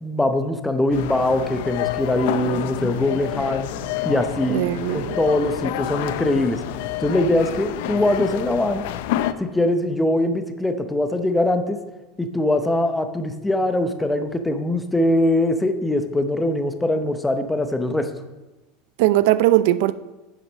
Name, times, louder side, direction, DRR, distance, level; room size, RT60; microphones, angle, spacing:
voice 1, 0.0-3.7 4.0-6.6 7.0-8.8 9.4-11.8 12.2-18.1, left 1 dB, 5° left, 7 dB, 0.7 m, -22 dB
sound 1, 0.9-9.3, left 13 dB, 65° left, 0.6 m, -28 dB
voice 2, 4.5-5.2 19.0-19.9, right 15 dB, 60° right, 16 dB, 0.4 m, -19 dB
9.9 x 6.5 x 6.2 m, 1.1 s
supercardioid pair, 165°, 0 cm